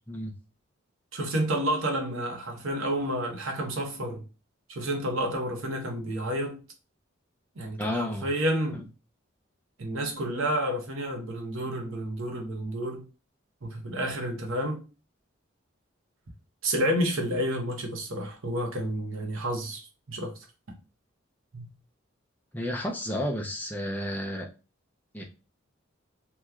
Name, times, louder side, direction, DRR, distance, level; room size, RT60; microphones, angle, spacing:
voice 1, 1.1-4.2 4.7-6.6 7.6-8.8 9.8-13.0 13.6-14.8 16.6-20.3 21.5-21.7, right 1 dB, 85° right, 0.9 m, -30 dB
voice 2, 7.8-8.3 8.7-8.8 22.5-24.5 25.1-25.2, left 1 dB, 10° left, 0.4 m, -31 dB
2.9 x 2.2 x 3.5 m
head